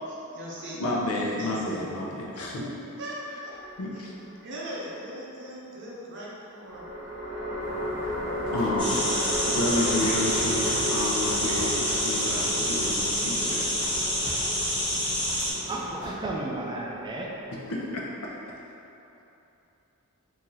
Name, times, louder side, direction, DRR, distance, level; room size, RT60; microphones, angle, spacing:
voice 1, 0.1-2.0 2.6-2.7 3.0-3.5 3.9-4.0 4.4-6.8, equal, 55° right, -6 dB, 0.7 m, -40 dB
voice 2, 0.8-2.7 3.8-4.1 8.5-9.1 9.5-13.7 17.5-18.3, left 1 dB, 80° left, -3 dB, 0.6 m, -30 dB
sound 1, 3.5-4.4 6.6-18.0, equal, 40° right, 1.4 m, -34 dB
Walk footsteps, 7.6-16.1, left 1 dB, 5° right, 1.0 m, -41 dB
sound 2, 8.8-15.5, equal, 20° left, 0.7 m, -27 dB
voice 3, 15.7-17.3, right 2 dB, 20° right, -2 dB, 0.3 m, -33 dB
3.6 x 2.8 x 3.0 m, 2.9 s
head